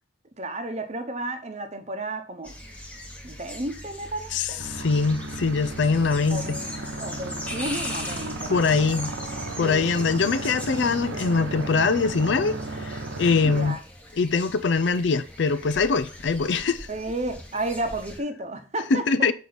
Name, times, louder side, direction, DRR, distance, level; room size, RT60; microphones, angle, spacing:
voice 1, 0.4-2.5 3.2-4.6 6.3-6.7 7.0-8.7 9.6-9.9 13.4-13.8 16.9-19.0, right 1 dB, 35° right, 0.9 m, -32 dB
sound 1, 2.4-18.2, left 1 dB, 5° left, 1.1 m, -40 dB
voice 2, 4.3-6.6 8.5-9.1 9.6-13.7 14.1-16.9 18.9-19.3, left 4 dB, 65° left, 0.5 m, -23 dB
sound 2, 4.6-13.7, right 2 dB, 80° right, 1.1 m, -35 dB
6.8 x 4.6 x 4.0 m
head